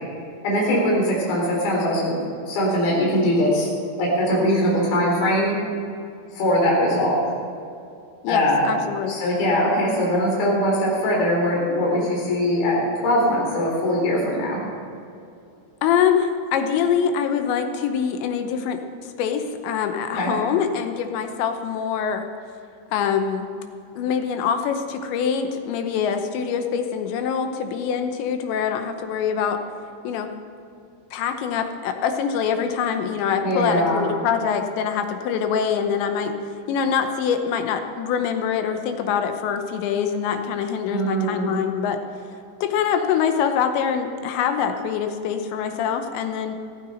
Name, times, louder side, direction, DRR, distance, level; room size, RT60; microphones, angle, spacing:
voice 1, 0.4-2.2 2.5-3.7 4.0-5.5 6.3-7.2 8.3-8.7 9.1-14.6 20.1-20.3 33.4-34.0 40.9-41.5, equal, 55° left, -4 dB, 5.4 m, -21 dB
voice 2, 8.2-9.2 15.8-18.8 19.2-22.3 22.9-23.5 24.0-29.6 30.0-30.3 31.1-36.4 36.7-42.0 42.6-46.6, left 7 dB, 80° left, 6 dB, 3.1 m, -24 dB
15.5 x 14.5 x 4.4 m, 2.5 s
omnidirectional pair, 5.4 m